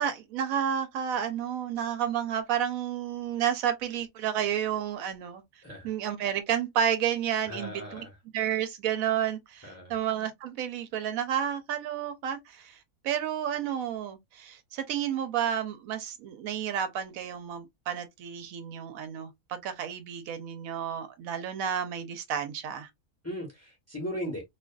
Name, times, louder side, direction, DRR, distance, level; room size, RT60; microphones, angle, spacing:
voice 1, 0.0-5.4 5.8-8.1 8.3-12.8 13.0-22.9, right 9 dB, 80° right, 1.0 m, -31 dB
voice 2, 7.5-8.1 9.6-9.9 23.2-24.4, equal, 15° left, 0.8 m, -37 dB
2.5 x 2.4 x 2.2 m
omnidirectional pair, 1.4 m